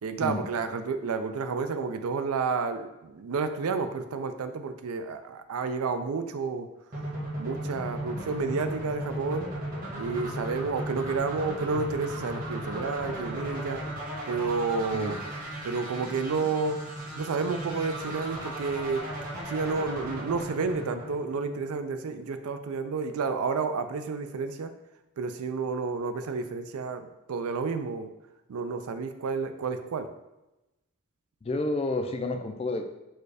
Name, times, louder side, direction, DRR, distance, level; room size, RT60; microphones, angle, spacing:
voice 1, 0.0-6.7 7.4-9.5 10.0-13.8 14.3-15.2 15.6-16.8 17.2-19.0 19.5-24.7 25.2-28.1 28.5-30.1, right 4 dB, 75° right, 9 dB, 0.4 m, -30 dB
sound 1, 6.9-21.8, right 1 dB, 40° right, 1.2 m, -36 dB
voice 2, 31.4-32.8, left 2 dB, 25° left, 6 dB, 0.3 m, -30 dB
4.5 x 2.2 x 4.8 m, 0.97 s
head